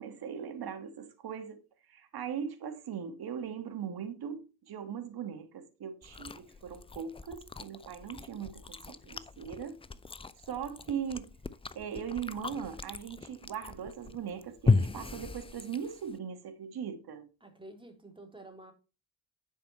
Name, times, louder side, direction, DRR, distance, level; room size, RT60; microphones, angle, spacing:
voice 1, 0.0-9.8 10.5-11.3 11.8-17.3, right 8 dB, 50° right, 1.9 m, -39 dB
Chewing mastication, 6.0-16.2, left 4 dB, 10° left, 0.5 m, -36 dB
voice 2, 17.4-18.7, right 1 dB, 10° right, 3.3 m, -50 dB
10.5 x 5.5 x 4.3 m
hypercardioid pair, 45°, 48 cm